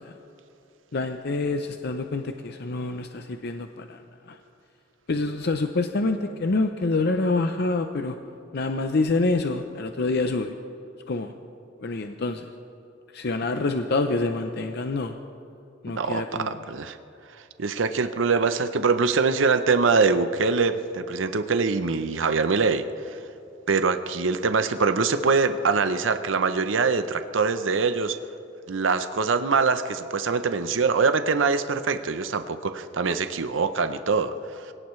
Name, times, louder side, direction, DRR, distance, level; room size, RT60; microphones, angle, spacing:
voice 1, 0.9-4.0 4.3-4.4 5.1-8.2 8.5-10.5 11.1-11.3 11.8-12.5 13.1-15.1 15.8-16.6, left 3 dB, 55° left, 6 dB, 0.6 m, -26 dB
voice 2, 16.0-17.0 17.6-23.2 23.7-28.2 28.7-34.7, right 4 dB, 80° right, 10 dB, 0.7 m, -23 dB
24.5 x 17.5 x 3.2 m, 2.8 s
head